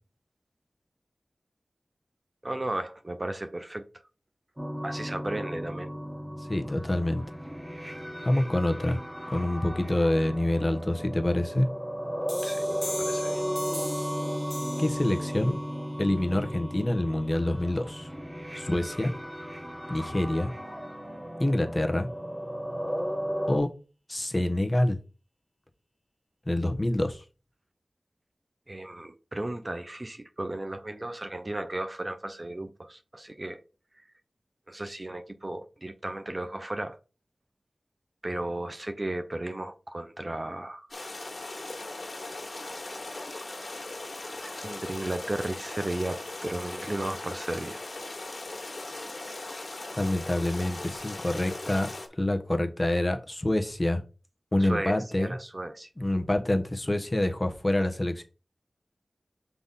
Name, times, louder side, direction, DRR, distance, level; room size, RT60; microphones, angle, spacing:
voice 1, 2.4-3.9 4.8-5.9 12.4-13.4 28.7-33.6 34.0-34.1 34.7-37.0 38.2-40.9 44.6-47.8 54.6-55.9, right 1 dB, 35° right, 0.8 m, -35 dB
sound 1, 4.6-23.6, equal, 15° right, 1.5 m, -35 dB
voice 2, 6.5-7.2 8.2-9.0 9.3-11.7 14.8-15.6 16.0-18.1 18.5-19.1 19.9-20.5 21.4-22.1 23.5-23.7 24.1-25.0 26.5-27.2 50.0-51.9 52.2-54.0 54.5-55.3 56.0-58.2, left 1 dB, 25° left, 1.2 m, -26 dB
sound 2, 12.3-17.7, left 1 dB, 5° left, 1.3 m, -41 dB
sound 3, 40.9-52.1, left 2 dB, 55° left, 2.0 m, -39 dB
5.8 x 4.1 x 5.5 m
wide cardioid pair, 65°, 0 cm